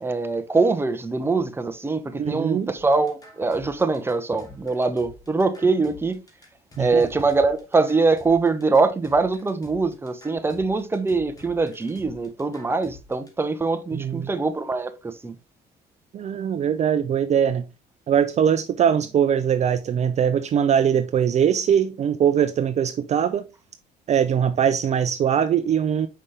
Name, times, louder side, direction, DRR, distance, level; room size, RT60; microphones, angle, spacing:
voice 1, 0.0-6.2 6.8-15.3, right 3 dB, 15° right, 0.8 m, -23 dB
voice 2, 2.1-2.7 6.8-7.0 13.9-14.3 16.1-17.6 18.1-23.4 24.1-26.1, right 8 dB, 40° right, 0.5 m, -21 dB
sound 1, 2.8-13.3, left 3 dB, 20° left, 2.1 m, -49 dB
5.6 x 5.2 x 3.3 m
cardioid pair, 110°, 17 cm